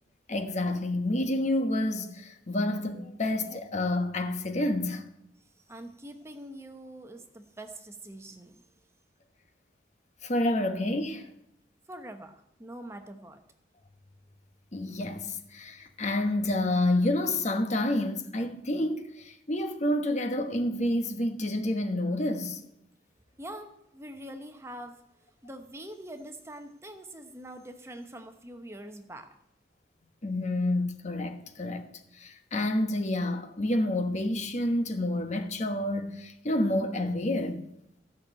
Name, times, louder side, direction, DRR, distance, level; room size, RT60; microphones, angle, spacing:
voice 1, 0.3-5.0 10.2-11.3 14.7-22.6 30.2-31.8 32.1-37.7, left 1 dB, 40° left, 1.2 m, -29 dB
voice 2, 5.7-8.6 11.9-13.4 23.4-25.0 25.4-29.4, right 1 dB, 15° right, 0.9 m, -44 dB
15.0 x 6.3 x 8.8 m
head